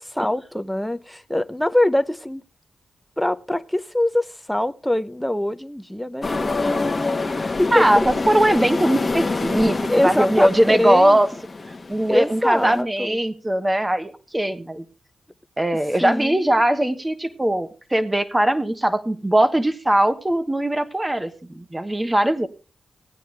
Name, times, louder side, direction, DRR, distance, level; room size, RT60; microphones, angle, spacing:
voice 1, 0.0-2.4 3.2-6.7 7.1-7.8 9.9-10.5 10.8-11.2 12.1-13.2 16.0-16.6, left 1 dB, 5° left, 10 dB, 0.8 m, -23 dB
sound 1, 6.2-12.8, left 3 dB, 35° left, 1.3 m, -26 dB
voice 2, 7.7-11.3 11.9-14.8 15.6-22.5, right 1 dB, 15° right, 11 dB, 1.2 m, -20 dB
16.5 x 9.2 x 3.4 m, 0.34 s
cardioid pair, 70°, 0 cm